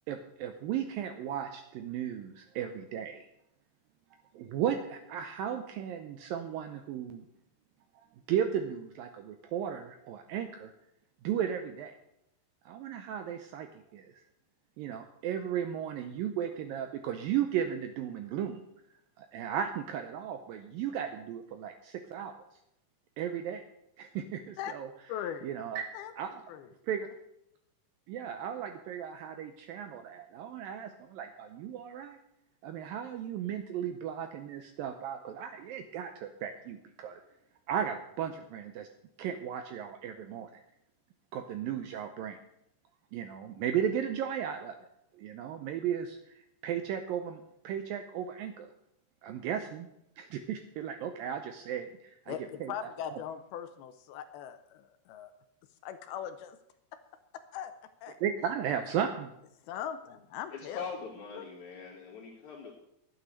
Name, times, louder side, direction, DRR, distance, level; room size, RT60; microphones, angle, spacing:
voice 1, 0.1-3.3 4.3-7.3 8.3-10.7 11.2-11.9 12.7-14.2 14.8-18.6 19.2-22.3 23.2-23.6 24.0-24.9 25.4-25.8 26.2-26.3 26.9-27.1 28.1-32.2 32.6-37.2 37.7-38.9 39.2-40.6 41.3-42.4 43.1-44.9 45.1-46.4 46.6-48.7 49.2-49.9 50.2-52.4 52.6-52.7 58.2-59.3, right 9 dB, 85° right, 8 dB, 2.1 m, -35 dB
voice 2, 25.1-25.5 25.9-26.1 26.5-26.7 52.3-55.3 55.8-56.6 56.9-57.0 57.5-57.7 58.0-58.2 59.6-60.8 61.4-61.5, left 9 dB, 80° left, 10 dB, 2.5 m, -40 dB
voice 3, 60.5-62.8, left 5 dB, 50° left, -7 dB, 3.2 m, -42 dB
11.5 x 9.2 x 6.4 m, 0.80 s
omnidirectional pair, 4.8 m